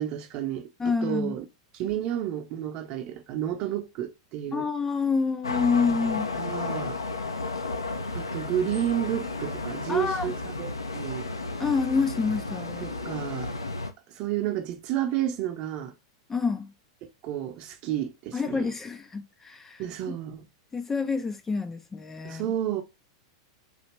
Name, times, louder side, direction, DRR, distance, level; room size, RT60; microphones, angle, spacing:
voice 1, 0.0-1.4 1.7-4.7 6.1-7.0 8.1-11.3 12.8-13.5 14.1-15.9 17.2-18.7 19.8-20.5 22.2-22.8, right 11 dB, 40° right, 0.8 m, -31 dB
voice 2, 0.8-1.4 4.5-6.3 9.9-10.3 11.6-12.9 16.3-16.7 18.3-19.8 20.7-22.5, left 5 dB, 15° left, 0.4 m, -27 dB
sound 1, 5.4-13.9, left 3 dB, 80° left, 0.6 m, -33 dB
4.1 x 2.8 x 3.1 m
figure-of-eight pair, 95°, 2 cm